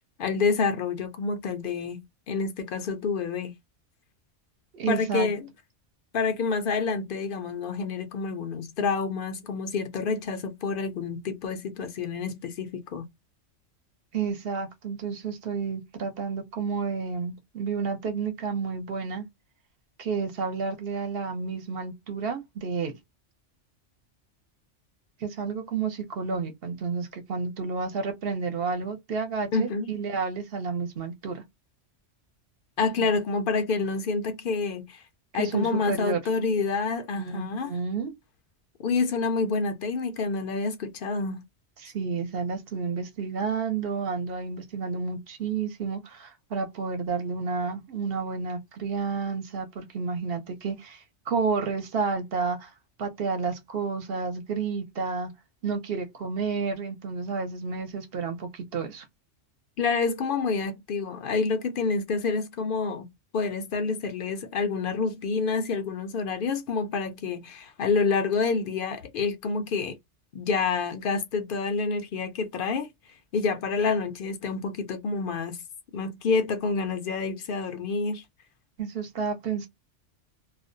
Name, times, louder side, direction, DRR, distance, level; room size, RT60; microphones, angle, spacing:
voice 1, 0.2-3.5 4.9-5.5 6.1-13.0 29.5-29.9 32.8-35.0 35.3-37.7 38.8-41.4 59.8-63.1 63.3-70.0 70.3-72.9 73.3-75.6 75.9-78.2, left 4 dB, 60° left, 0.6 m, -28 dB
voice 2, 4.7-5.3 14.1-19.3 20.0-23.0 25.2-31.4 33.0-33.1 35.3-36.2 37.2-38.1 41.8-52.7 53.0-55.3 55.6-59.0 78.8-79.7, right 5 dB, 60° right, 0.9 m, -31 dB
2.4 x 2.1 x 2.5 m
omnidirectional pair, 1.2 m